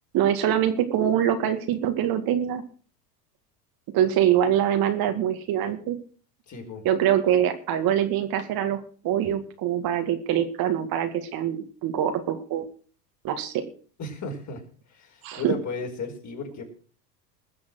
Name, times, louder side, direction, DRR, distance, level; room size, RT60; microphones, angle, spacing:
voice 1, 0.1-2.6 3.9-6.0 6.8-12.7 13.2-13.6 15.2-15.5, right 10 dB, 45° right, 7 dB, 2.2 m, -24 dB
voice 2, 6.5-6.8 14.0-14.6 14.9-16.6, left 4 dB, 35° left, 2 dB, 5.2 m, -34 dB
20.5 x 7.1 x 6.4 m, 0.42 s
hypercardioid pair, 95°, 48 cm